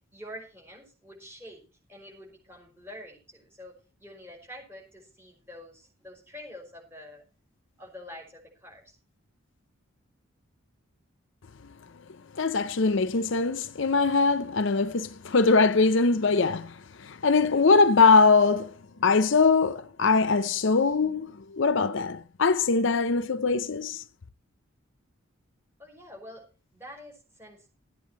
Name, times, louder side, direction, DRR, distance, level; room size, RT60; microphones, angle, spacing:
voice 1, 0.1-1.6 1.9-3.7 4.0-7.2 7.8-9.0 25.8-26.4 26.7-27.7, left 1 dB, 10° right, 5.5 m, -46 dB
voice 2, 12.4-18.7 19.0-24.0, left 4 dB, 60° left, 0.6 m, -22 dB
14.5 x 9.3 x 4.5 m
head